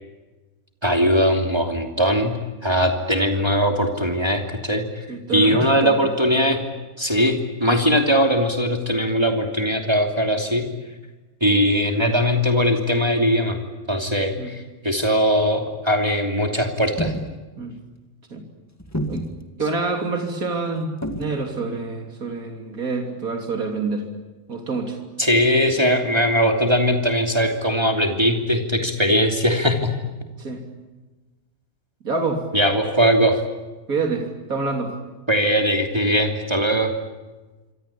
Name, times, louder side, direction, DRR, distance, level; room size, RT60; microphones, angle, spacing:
voice 1, 0.8-4.8 5.3-6.6 7.0-10.6 11.4-13.6 13.9-17.1 25.2-29.9 32.5-33.4 35.3-36.9, equal, 20° right, 3 dB, 2.9 m, -20 dB
voice 2, 5.1-6.1 14.4-14.5 17.6-17.7 18.3-18.4 19.1-19.3 19.6-24.0 24.5-25.0 30.4-30.6 32.0-32.4 33.9-34.9, right 3 dB, 80° right, 3 dB, 3.6 m, -27 dB
sound 1, 16.8-17.3 18.8-19.4 21.0-21.4, equal, 10° left, 1.9 m, -28 dB
27.5 x 25.5 x 8.6 m, 1.2 s
omnidirectional pair, 1.5 m